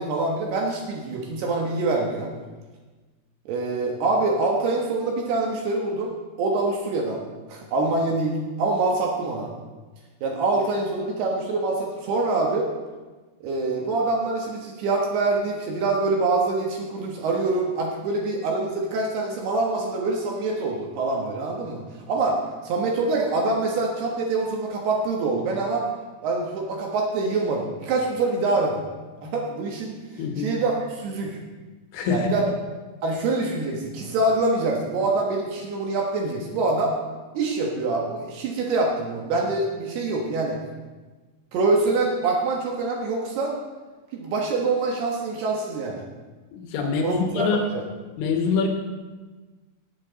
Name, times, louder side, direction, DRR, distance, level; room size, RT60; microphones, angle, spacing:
voice 1, 0.0-2.3 3.5-7.2 7.5-9.5 10.2-12.7 13.4-22.4 22.6-25.9 26.2-28.8 29.2-29.9 30.4-31.4 32.1-32.4 33.0-36.9 37.3-40.6 41.5-43.6 44.1-46.0 46.8-47.8, right 3 dB, 65° right, 0 dB, 2.8 m, -25 dB
voice 2, 30.2-30.6 31.9-32.3 46.5-47.6 48.2-48.7, left 5 dB, 75° left, 3 dB, 3.5 m, -24 dB
17.5 x 8.8 x 4.0 m, 1.3 s
omnidirectional pair, 5.8 m